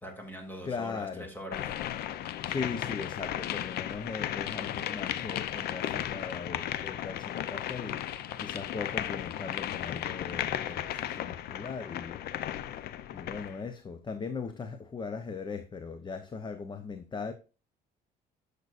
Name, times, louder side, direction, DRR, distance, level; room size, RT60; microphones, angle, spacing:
voice 1, 0.0-1.7, equal, 10° left, 2.5 m, -42 dB
voice 2, 0.6-1.3 2.4-12.2 12.7-12.8 13.1-17.3, left 5 dB, 25° left, 0.7 m, -39 dB
sound 1, 1.5-13.6, left 11 dB, 70° left, 0.6 m, -35 dB
10.5 x 6.7 x 2.5 m
cardioid pair, 110°, 17 cm